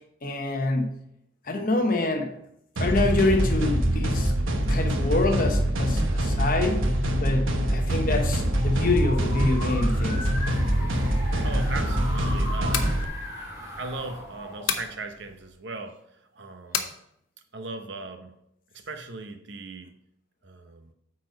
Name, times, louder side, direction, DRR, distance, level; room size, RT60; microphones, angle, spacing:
voice 1, 0.2-1.0 1.5-2.3 2.8-4.3 4.7-6.9 7.2-10.3, left 2 dB, 45° left, 4 dB, 1.0 m, -26 dB
sound 1, 2.8-13.0, equal, 90° right, 1.1 m, -24 dB
sound 2, 8.3-15.5, left 1 dB, 15° right, 1.5 m, -38 dB
voice 2, 11.4-13.1 13.8-16.0 16.3-16.9 17.5-18.4 18.7-19.9 20.4-20.9, right 3 dB, 60° right, 7 dB, 0.8 m, -38 dB
sound 3, 12.7-13.0 14.7-14.9 16.7-16.9, left 7 dB, 80° left, 0.9 m, -28 dB
8.6 x 4.2 x 5.1 m, 0.76 s
head